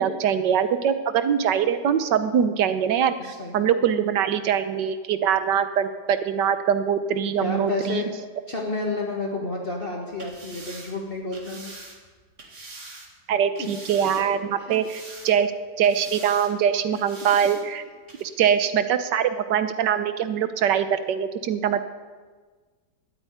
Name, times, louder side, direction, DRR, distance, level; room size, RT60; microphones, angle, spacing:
voice 1, 0.0-3.1 3.5-8.0 13.3-15.5 15.8-17.8 18.2-21.8, right 8 dB, 80° right, 11 dB, 1.5 m, -23 dB
voice 2, 3.2-3.7 7.3-8.1 8.5-11.7 13.6-13.7 14.2-14.3, left 2 dB, 35° left, -1 dB, 1.7 m, -30 dB
sound 1, 10.1-13.1 13.6-14.4 14.7-15.5 15.8-16.5 16.9-17.6 18.1-18.2, right 2 dB, 45° right, 2.4 m, -43 dB
12.5 x 8.9 x 9.2 m, 1.4 s
omnidirectional pair, 1.8 m